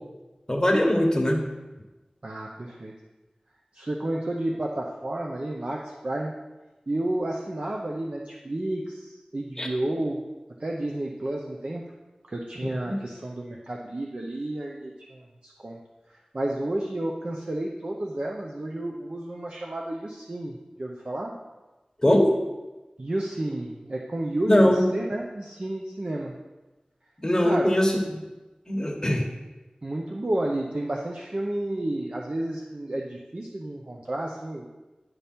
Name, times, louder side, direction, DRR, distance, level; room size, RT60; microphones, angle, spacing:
voice 1, 0.5-1.5 9.6-9.7 12.6-12.9 22.0-22.3 24.4-24.9 27.2-27.9 28.7-29.3, left 1 dB, 25° left, 1 dB, 1.3 m, -21 dB
voice 2, 2.2-2.9 3.7-6.3 6.9-10.2 10.6-11.8 12.3-15.8 16.3-21.4 23.0-26.3 27.4-27.7 29.8-34.7, right 1 dB, 50° right, -1 dB, 0.7 m, -31 dB
10.5 x 3.5 x 4.3 m, 1.1 s
wide cardioid pair, 60°, 2 cm